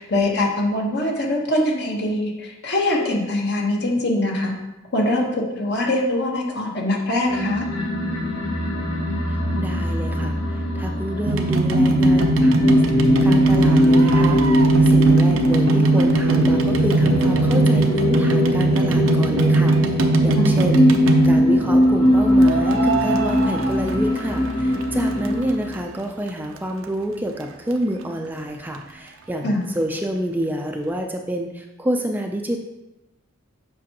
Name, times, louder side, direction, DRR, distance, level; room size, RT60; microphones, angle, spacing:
voice 1, 0.0-4.6 4.9-7.6 20.3-20.6 29.4-29.6, left 1 dB, 55° left, 0 dB, 1.2 m, -23 dB
sound 1, 7.2-25.8, left 1 dB, 85° left, 1.5 m, -20 dB
voice 2, 9.3-12.6 13.2-32.6, equal, 10° right, 3 dB, 0.4 m, -28 dB
sound 2, 11.3-21.6 22.4-24.5 24.8-25.7 26.3-26.4 26.6-26.7 26.8-26.9 27.4-27.5 27.7-27.8, right 3 dB, 85° right, 0.6 m, -20 dB
7.4 x 5.5 x 2.9 m, 0.97 s
head